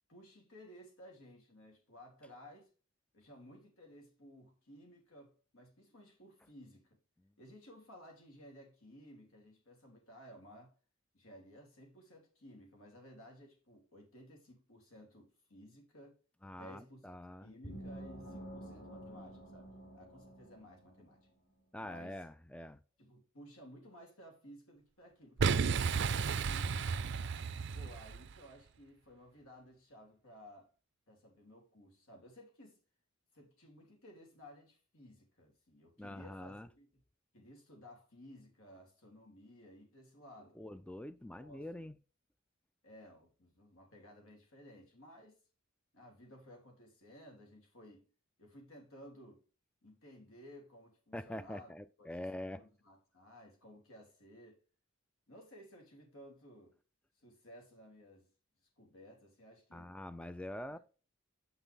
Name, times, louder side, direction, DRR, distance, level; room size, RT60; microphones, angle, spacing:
voice 1, 0.1-2.7 3.1-7.0 7.4-10.7 11.1-16.1 16.5-19.7 19.9-21.2 21.8-22.2 23.0-26.9 27.7-30.7 31.1-32.8 33.3-37.0 37.3-40.6 41.4-41.9 42.8-45.4 45.9-48.1 48.4-49.4 49.8-51.7 52.0-54.6 55.3-56.8 57.2-58.3 58.8-60.3 60.7-60.8, equal, 80° left, 3.1 m, -57 dB
voice 2, 16.4-17.5 21.7-22.8 36.0-36.7 40.6-41.9 51.1-52.6 59.7-60.8, left 1 dB, 5° left, 0.3 m, -45 dB
sound 1, 17.6-21.2, right 1 dB, 50° left, 2.7 m, -49 dB
Boom, 25.4-28.4, right 5 dB, 55° right, 0.5 m, -33 dB
8.1 x 5.8 x 3.4 m
head